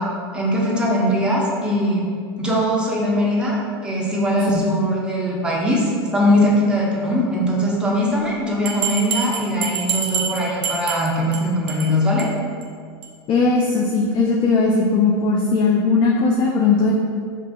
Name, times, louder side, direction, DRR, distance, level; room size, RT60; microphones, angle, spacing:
voice 1, 0.0-2.1 2.4-12.3, equal, 5° right, -5 dB, 0.7 m, -21 dB
Bell, 8.6-11.4 11.7-11.9 12.2-12.3 12.6-12.7 13.0-13.1, right 7 dB, 50° right, 0.6 m, -26 dB
voice 2, 13.3-16.9, left 4 dB, 35° left, -1 dB, 0.4 m, -18 dB
4.6 x 2.4 x 2.2 m, 2.1 s
hypercardioid pair, 95°, 14 cm